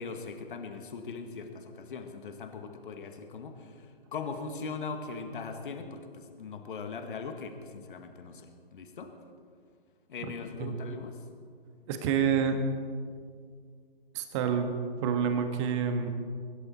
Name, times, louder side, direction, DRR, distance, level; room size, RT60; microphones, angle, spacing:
voice 1, 0.0-9.1 10.1-11.2, left 4 dB, 55° left, 6 dB, 1.8 m, -40 dB
voice 2, 11.9-12.6 14.1-14.7 15.0-16.1, right 7 dB, 30° right, 7 dB, 1.6 m, -28 dB
24.5 x 13.0 x 4.3 m, 2.1 s
figure-of-eight pair, 130°, 30 cm